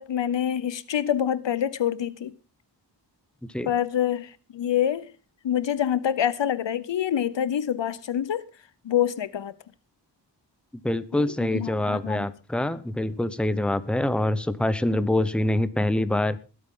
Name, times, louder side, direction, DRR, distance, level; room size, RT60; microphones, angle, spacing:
voice 1, 0.0-2.3 3.6-5.1 5.4-8.5 8.8-9.5 11.2-12.3, left 10 dB, 80° left, 0.9 m, -26 dB
voice 2, 10.8-16.4, left 1 dB, ahead, 0.9 m, -25 dB
20.0 x 8.7 x 3.8 m
wide cardioid pair, 90°, 43 cm